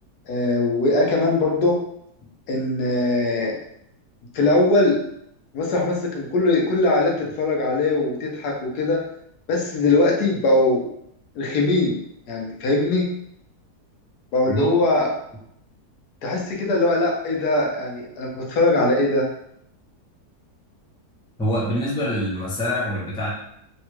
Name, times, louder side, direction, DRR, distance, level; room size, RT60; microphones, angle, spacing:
voice 1, 0.3-1.8 2.5-3.6 4.3-5.0 5.5-9.0 9.5-10.9 11.3-12.0 12.3-13.0 14.3-15.1 16.2-19.3, left 2 dB, 75° left, 0 dB, 1.2 m, -21 dB
voice 2, 21.4-23.3, equal, 5° left, -6 dB, 0.3 m, -25 dB
3.4 x 2.3 x 3.0 m, 0.74 s
omnidirectional pair, 1.7 m